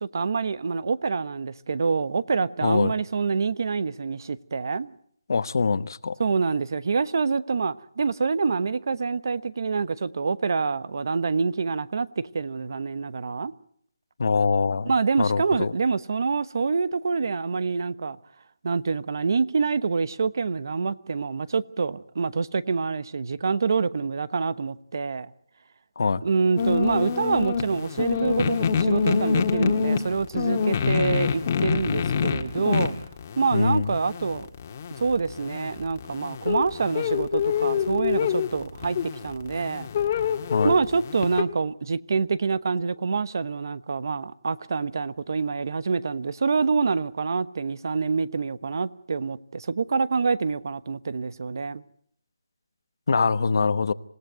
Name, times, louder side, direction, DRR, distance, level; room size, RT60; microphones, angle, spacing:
voice 1, 0.0-4.9 6.2-13.5 14.9-18.2 18.6-25.3 26.2-32.9 33.4-34.5 35.0-39.0 39.2-39.9 40.6-51.8, right 4 dB, 55° right, 1.0 m, -26 dB
voice 2, 2.6-2.9 5.3-6.1 14.2-14.9 15.2-15.7 26.0-26.2 33.5-34.0 40.5-40.7 53.1-53.9, left 4 dB, 55° left, 1.0 m, -23 dB
sound 1, 26.6-41.4, left 6 dB, 30° left, 1.8 m, -26 dB
27.0 x 17.5 x 9.2 m
hypercardioid pair, 170°, 2 cm